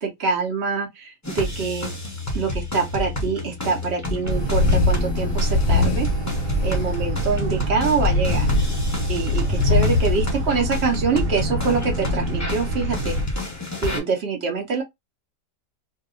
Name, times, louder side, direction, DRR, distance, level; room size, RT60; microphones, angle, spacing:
voice 1, 0.0-1.9 2.3-6.1 6.6-8.5 9.1-13.2 13.8-14.8, right 5 dB, 55° right, 0.7 m, -25 dB
sound 1, 1.2-14.0, left 1 dB, 25° left, 0.3 m, -29 dB
Boat Water vehicle, 4.2-13.3, right 1 dB, 75° right, 1.1 m, -28 dB
sound 2, 4.3-5.0 5.3-7.5 8.0-10.8, left 3 dB, 70° left, 0.9 m, -22 dB
2.7 x 2.2 x 2.3 m
omnidirectional pair, 1.8 m